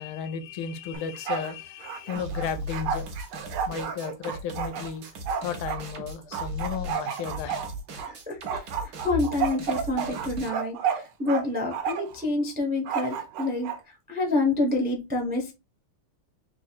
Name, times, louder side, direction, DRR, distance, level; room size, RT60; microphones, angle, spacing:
voice 1, 0.0-3.1 3.7-5.0 5.4-7.6 8.0-8.4, left 6 dB, 80° left, 1.6 m, -34 dB
Bark, 0.9-1.5 1.8-5.8 6.3-8.1 8.5-11.4 11.7-12.2 12.9-13.8, right 7 dB, 80° right, 1.6 m, -31 dB
sound 1, 2.1-10.5, equal, 55° right, 1.3 m, -38 dB
voice 2, 8.0-8.7 9.0-13.7 14.1-15.5, left 2 dB, 15° right, 0.3 m, -28 dB
4.3 x 2.4 x 4.3 m
omnidirectional pair, 2.4 m